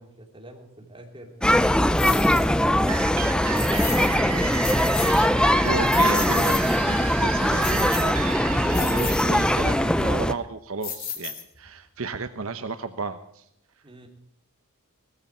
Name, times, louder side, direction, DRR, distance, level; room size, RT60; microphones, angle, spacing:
voice 1, 0.0-1.7 2.5-4.9 13.8-14.1, right 1 dB, 20° right, 2 dB, 3.0 m, -44 dB
sound 1, 1.4-10.3, left 1 dB, 5° left, 0.5 m, -21 dB
sound 2, 1.9-2.5 3.5-4.2 4.5-5.3 5.7-6.8 7.6-8.3 8.7-9.3 10.8-11.7, left 8 dB, 40° left, 2.6 m, -34 dB
sound 3, 2.9-10.5, right 7 dB, 85° right, 1.3 m, -33 dB
voice 2, 5.6-8.1 8.5-13.5, right 4 dB, 65° right, 9 dB, 0.9 m, -33 dB
18.5 x 14.5 x 4.4 m, 0.74 s
head